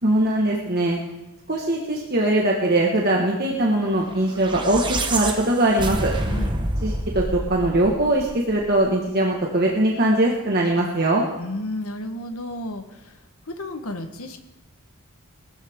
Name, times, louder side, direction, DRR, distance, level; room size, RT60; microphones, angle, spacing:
voice 1, 0.0-1.0 1.5-6.1 6.8-11.2, right 1 dB, 45° right, -2 dB, 1.6 m, -21 dB
sound 1, 4.2-8.7, right 1 dB, 20° right, 1.1 m, -27 dB
voice 2, 11.4-13.2 13.5-14.4, left 1 dB, 75° left, 6 dB, 1.4 m, -32 dB
19.5 x 13.5 x 3.7 m, 0.98 s
head